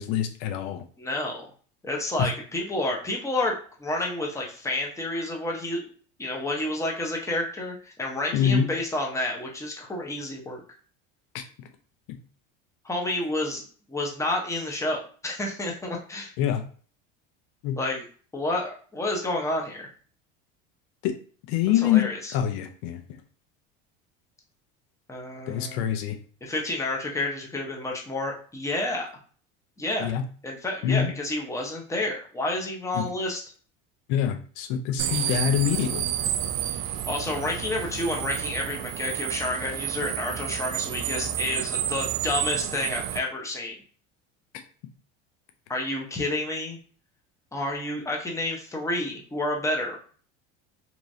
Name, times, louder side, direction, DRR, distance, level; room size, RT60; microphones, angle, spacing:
voice 1, 0.0-0.9 2.2-2.3 8.3-8.7 11.3-11.7 16.4-16.6 17.6-17.8 21.0-21.1 21.5-23.0 25.5-26.2 30.0-30.2 30.8-31.1 32.9-33.1 34.1-36.1, left 9 dB, 70° left, 5 dB, 0.6 m, -25 dB
voice 2, 1.0-1.5 1.8-5.9 6.2-10.6 12.8-13.6 13.9-16.3 17.8-18.0 18.3-19.9 21.8-22.3 25.1-25.8 26.4-29.1 29.8-30.1 30.4-33.4 36.7-43.8 45.7-46.8 47.5-50.2, left 1 dB, 10° left, 0 dB, 0.9 m, -30 dB
sound 1, 35.0-43.2, right 11 dB, 70° right, 0.5 m, -30 dB
2.9 x 2.6 x 2.7 m, 0.42 s
supercardioid pair, 100°, 29 cm